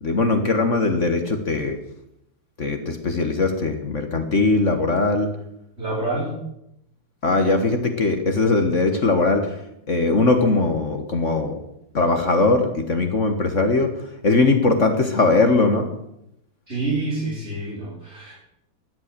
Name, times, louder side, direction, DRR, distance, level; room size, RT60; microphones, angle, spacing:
voice 1, 0.0-1.8 2.6-5.3 7.2-9.5 9.9-11.6 11.9-13.9 14.2-15.9, left 3 dB, 45° left, 6 dB, 1.6 m, -20 dB
voice 2, 5.8-6.3 16.7-18.4, right 2 dB, 35° right, -6 dB, 5.5 m, -27 dB
15.5 x 11.0 x 6.7 m, 0.80 s
omnidirectional pair, 2.0 m